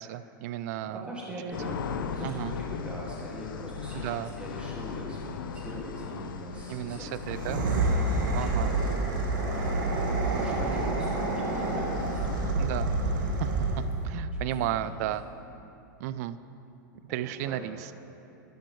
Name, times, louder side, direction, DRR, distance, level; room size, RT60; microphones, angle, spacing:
voice 1, 0.0-1.1 2.2-2.5 3.9-4.3 6.7-7.6 8.3-8.7 12.6-12.9 13.4-15.2 16.0-16.4 17.0-17.8, right 13 dB, 50° right, 14 dB, 0.4 m, -33 dB
voice 2, 0.6-7.1 7.5-10.0 10.3-12.4 14.3-15.1 17.1-17.7, equal, 10° right, -5 dB, 2.2 m, -41 dB
sound 1, 1.5-12.5, left 6 dB, 80° left, 0.6 m, -38 dB
sound 2, 7.2-14.0, right 2 dB, 70° right, 1.6 m, -28 dB
11.5 x 11.0 x 3.2 m, 2.8 s
hypercardioid pair, 135°, 11 cm